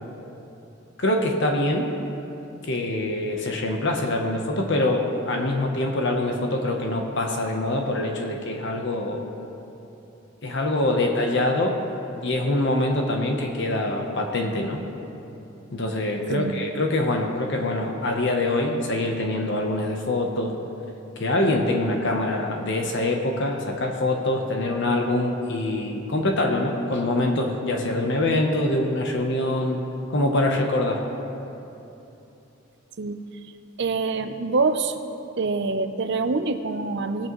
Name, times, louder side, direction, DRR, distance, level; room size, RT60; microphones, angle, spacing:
voice 1, 1.0-1.9 2.6-9.3 10.4-11.8 12.2-14.8 15.7-20.6 21.2-29.8 30.1-31.0, left 1 dB, 60° left, 2 dB, 0.9 m, -24 dB
voice 2, 33.8-34.9 35.4-37.3, right 3 dB, 60° right, 9 dB, 0.6 m, -25 dB
18.5 x 8.6 x 3.1 m, 2.9 s
head